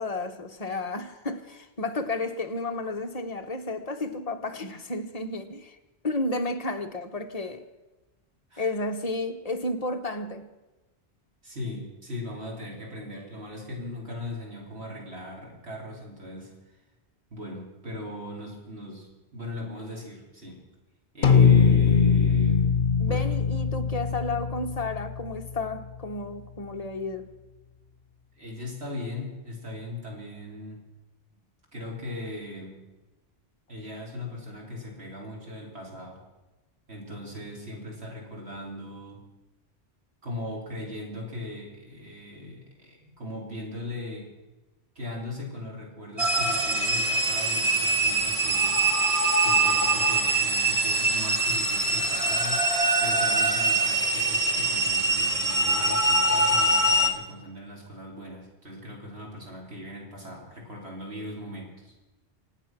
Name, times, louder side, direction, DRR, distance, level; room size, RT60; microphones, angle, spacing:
voice 1, 0.0-5.8 6.0-7.6 8.6-10.5 23.0-27.3, left 2 dB, 35° left, 1.3 m, -32 dB
voice 2, 11.4-16.5 17.3-20.6 21.1-23.2 28.4-30.8 31.7-32.8 33.7-36.2 36.9-39.2 40.2-44.3 45.0-48.8 49.4-52.6 53.0-61.9, left 1 dB, 85° right, 4.3 m, -39 dB
sound 1, 21.2-25.8, left 6 dB, 60° left, 1.1 m, -21 dB
sound 2, 46.2-57.1, right 2 dB, 35° right, 1.5 m, -23 dB
25.5 x 8.8 x 6.0 m
omnidirectional pair, 1.1 m